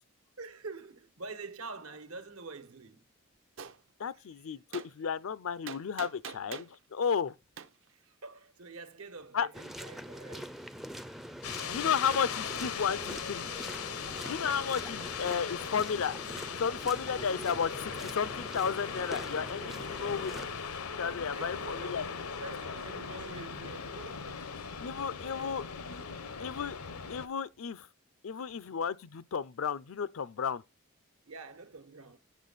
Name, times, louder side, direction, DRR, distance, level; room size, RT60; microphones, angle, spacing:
voice 1, 0.4-3.1 4.1-4.5 7.9-10.6 14.0-14.9 17.1-17.2 19.6-20.1 21.3-24.5 25.3-25.6 31.2-32.2, right 3 dB, 80° right, 1.3 m, -47 dB
Gunshot gunfire, 3.6-3.8 4.7-4.9 5.7-6.7 7.6-7.7, right 7 dB, 60° right, 0.6 m, -42 dB
voice 2, 4.0-7.3 9.3-9.5 11.6-13.5 14.2-16.1 16.6-20.3 21.0-22.0 24.8-25.6 26.4-26.8 27.1-27.9 28.2-30.6, left 7 dB, 70° left, 0.5 m, -33 dB
sound 1, 9.5-20.5, equal, ahead, 0.4 m, -44 dB
sound 2, 11.4-27.3, left 6 dB, 85° left, 0.9 m, -39 dB
8.2 x 6.6 x 4.0 m
head